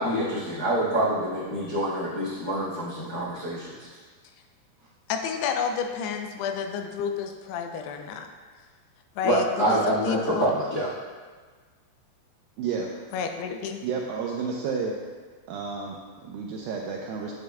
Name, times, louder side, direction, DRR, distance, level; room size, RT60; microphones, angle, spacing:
voice 1, 0.0-3.7 9.2-10.9, right 1 dB, 65° left, -10 dB, 0.9 m, -26 dB
voice 2, 5.1-8.3 9.2-9.8 10.0-10.5 13.1-13.8, left 6 dB, 85° left, 5 dB, 2.7 m, -30 dB
voice 3, 12.6-12.9 13.8-15.0 15.5-17.3, right 5 dB, 80° right, -1 dB, 2.1 m, -31 dB
9.2 x 7.8 x 2.3 m, 1.5 s
omnidirectional pair, 4.6 m